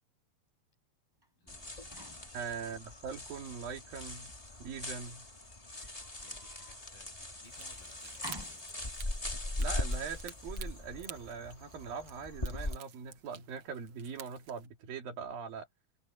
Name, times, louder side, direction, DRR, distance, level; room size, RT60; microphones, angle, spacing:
sound 1, 1.2-3.1 3.6-4.3 5.3-6.8 7.4-8.7, right 1 dB, 5° right, 5.6 m, -53 dB
voice 1, 1.4-2.3 2.6-3.0 6.1-8.2, left 3 dB, 85° left, 9.8 m, -62 dB
sound 2, 1.5-12.8, left 1 dB, 15° left, 1.7 m, -40 dB
voice 2, 2.3-4.3 4.6-5.2 9.1-9.2 9.6-15.7, right 6 dB, 85° right, 4.5 m, -42 dB
sound 3, 7.4-14.7, right 9 dB, 60° right, 1.3 m, -53 dB
open air
omnidirectional pair, 4.0 m